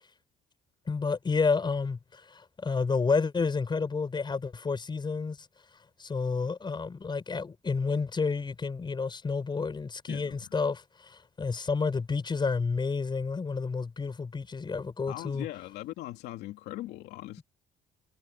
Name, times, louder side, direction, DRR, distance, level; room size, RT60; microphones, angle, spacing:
voice 1, 0.9-5.4 6.0-15.5, left 4 dB, 25° left, 5.6 m, -30 dB
voice 2, 10.1-10.5 15.1-17.4, left 15 dB, 85° left, 2.6 m, -40 dB
cardioid pair, 110°, 17 cm